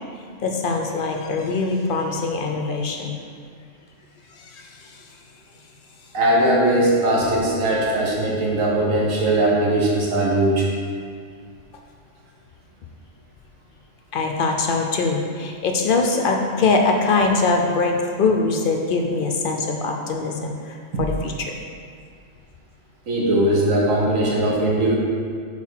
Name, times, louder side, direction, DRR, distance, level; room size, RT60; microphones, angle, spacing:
voice 1, 0.4-3.2 4.3-5.0 7.2-7.3 14.1-21.6, left 3 dB, 60° left, 2 dB, 0.6 m, -23 dB
voice 2, 6.1-10.7 23.1-25.0, right 1 dB, 80° right, -3 dB, 1.5 m, -19 dB
4.6 x 4.3 x 5.7 m, 2.2 s
omnidirectional pair, 1.3 m